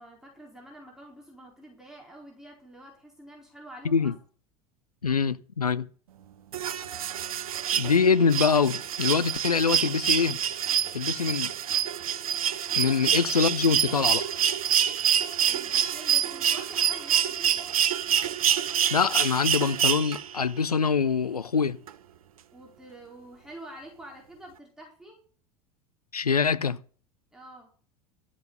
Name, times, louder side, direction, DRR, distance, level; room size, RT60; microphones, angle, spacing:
voice 1, 0.0-4.1 15.5-17.7 22.5-25.2 27.3-27.7, right 1 dB, 5° right, 4.4 m, -47 dB
voice 2, 5.0-5.9 7.7-10.4 10.9-11.5 12.7-14.2 18.9-21.8 26.1-26.8, left 5 dB, 85° left, 0.6 m, -24 dB
sound 1, 6.5-20.4 21.9-22.0, right 9 dB, 70° right, 0.9 m, -26 dB
13.0 x 7.3 x 6.6 m
figure-of-eight pair, 80°, 19 cm